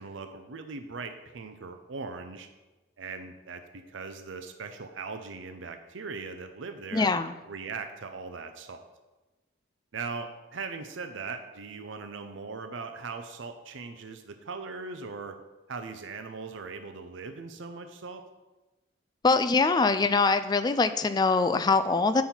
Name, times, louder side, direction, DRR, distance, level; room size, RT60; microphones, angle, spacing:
voice 1, 0.0-2.5 3.0-7.1 7.5-8.8 9.9-15.4 15.7-18.2, right 4 dB, 75° right, 7 dB, 0.6 m, -39 dB
voice 2, 6.9-7.3 19.2-22.2, left 4 dB, 20° left, 10 dB, 0.3 m, -23 dB
8.5 x 5.6 x 4.4 m, 1.1 s
head